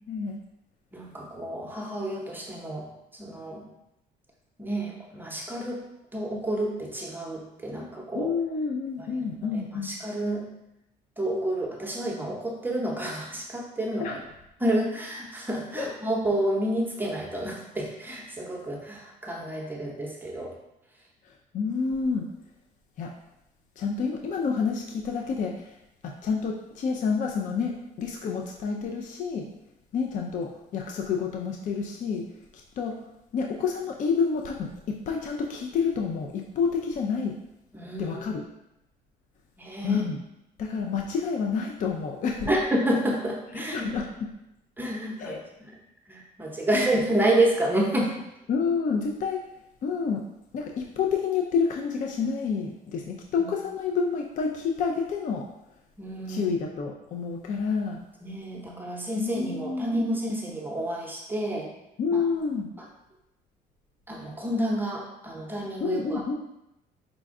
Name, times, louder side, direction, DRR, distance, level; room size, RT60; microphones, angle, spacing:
voice 1, 0.9-2.9 3.2-3.6 4.6-5.8 6.1-8.3 9.0-9.1 9.5-10.4 11.2-14.1 14.6-20.5 37.7-38.2 39.6-40.0 42.5-43.9 44.8-45.7 46.1-48.1 53.4-53.5 56.0-56.5 58.2-61.7 62.1-62.2 64.1-66.3, right 1 dB, 10° right, -1 dB, 0.8 m, -29 dB
voice 2, 8.1-9.9 14.0-14.2 15.8-15.9 21.5-22.3 23.0-23.1 23.8-25.7 26.0-29.5 29.9-32.2 32.8-32.9 33.3-34.7 35.1-37.3 38.0-38.4 39.8-40.2 40.6-42.5 43.6-44.1 45.2-45.4 48.5-49.4 49.8-50.2 50.5-55.4 56.3-58.0 59.2-59.9 62.0-62.7 65.8-66.3, left 5 dB, 50° left, 1 dB, 0.5 m, -28 dB
5.0 x 2.3 x 3.6 m, 0.87 s
cardioid pair, 110°, 17 cm